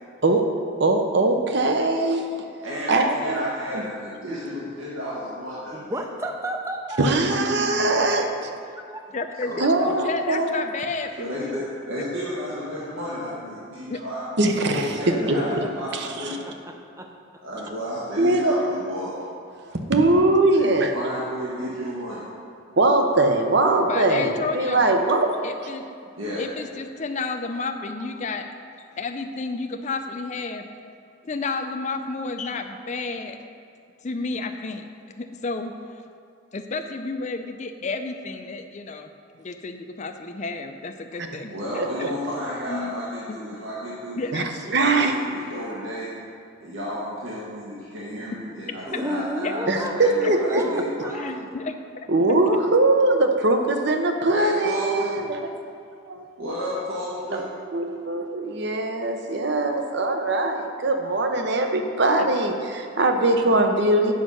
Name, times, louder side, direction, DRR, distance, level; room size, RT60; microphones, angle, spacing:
voice 1, 0.8-2.3 2.9-3.5 7.0-8.5 9.6-10.7 14.4-14.9 15.9-16.3 18.2-18.5 19.7-20.9 22.8-25.3 41.8-41.9 44.3-44.4 44.7-45.1 49.7-50.8 52.1-55.4 56.1-56.2 57.7-64.1, right 2 dB, 55° right, 5 dB, 0.7 m, -21 dB
voice 2, 2.6-5.9 9.4-10.0 11.2-14.2 14.7-16.4 17.4-19.1 20.5-22.2 26.2-26.4 41.5-44.3 44.6-46.1 46.6-51.2 54.3-55.2 56.4-57.4, equal, 75° right, -7 dB, 1.4 m, -32 dB
voice 3, 5.7-7.1 8.9-9.2 15.1-15.7 16.0-17.1 48.9-49.9 50.5-51.4, equal, 15° right, 3 dB, 0.5 m, -32 dB
voice 4, 7.4-8.1 9.1-11.6 13.9-14.0 23.8-24.9 25.4-25.9 26.4-28.5 28.9-30.7 31.2-33.4 34.0-34.9 35.2-36.0 36.5-39.1 39.4-41.5 42.7-43.4 44.2-44.6 49.4-49.5 50.2-50.3 51.1-51.8 52.3-52.4 62.2-62.3, left 3 dB, 35° left, 6 dB, 0.4 m, -31 dB
8.0 x 5.5 x 6.3 m, 2.4 s
head